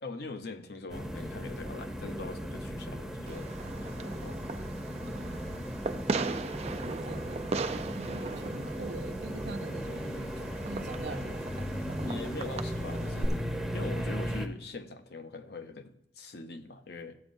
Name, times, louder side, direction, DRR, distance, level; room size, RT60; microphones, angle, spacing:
voice 1, 0.0-4.4 12.0-13.5 13.7-17.2, left 3 dB, 65° left, 7 dB, 0.8 m, -42 dB
sound 1, 0.9-14.5, equal, 5° right, 0.8 m, -36 dB
Fireworks, 3.3-13.3, right 3 dB, 35° right, 0.4 m, -38 dB
voice 2, 5.1-5.7 6.2-6.4 7.1-7.5 7.9-11.7, right 3 dB, 70° right, 7 dB, 0.7 m, -44 dB
13.5 x 8.3 x 2.6 m, 0.72 s
head